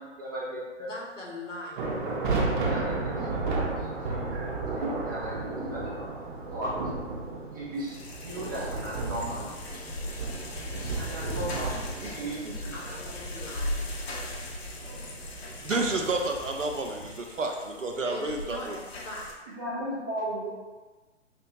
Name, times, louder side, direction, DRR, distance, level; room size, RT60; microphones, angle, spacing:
voice 1, 0.0-0.9 2.4-4.5 4.7-6.1 6.5-6.7 7.5-9.5 10.7-12.5 12.8-13.0 13.3-13.4 14.8-15.1 19.5-20.5, right 1 dB, 20° right, -6 dB, 0.4 m, -37 dB
voice 2, 0.8-2.8 12.6-13.9 18.1-19.3, left 1 dB, 90° left, -3 dB, 1.3 m, -41 dB
sound 1, 1.8-17.1, right 3 dB, 40° right, 0.8 m, -34 dB
sound 2, 7.8-19.3, left 1 dB, 55° left, 0.8 m, -39 dB
voice 3, 15.6-18.8, right 2 dB, 90° right, 2 dB, 0.7 m, -30 dB
5.0 x 2.2 x 2.8 m, 1.3 s
figure-of-eight pair, 130°, 37 cm